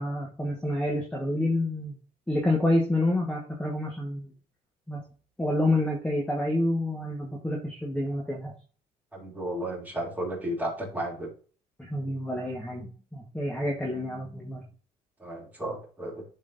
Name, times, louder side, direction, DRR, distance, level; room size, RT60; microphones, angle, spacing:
voice 1, 0.0-2.0 2.3-4.3 4.9-5.0 5.4-8.5 11.8-14.6, left 1 dB, 5° left, -1 dB, 1.2 m, -28 dB
voice 2, 9.1-11.3 15.2-16.2, right 1 dB, 10° right, -2 dB, 2.7 m, -33 dB
11.5 x 3.9 x 2.6 m, 0.41 s
cardioid pair, 110°, 17 cm